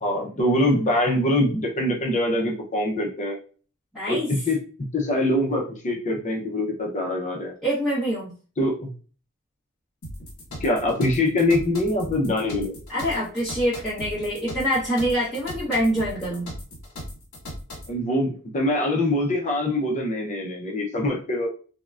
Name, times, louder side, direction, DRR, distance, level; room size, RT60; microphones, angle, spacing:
voice 1, 0.0-3.4 4.1-4.2 4.5-4.6 4.9-7.5 8.6-8.9 10.6-12.7 17.9-21.5, left 1 dB, 35° left, 1 dB, 0.6 m, -24 dB
voice 2, 3.9-4.3 7.6-8.3 12.9-16.5, equal, ahead, -11 dB, 0.8 m, -25 dB
sound 1, 10.0-17.9, equal, 60° left, 1.2 m, -38 dB
3.6 x 2.1 x 2.3 m, 0.39 s
head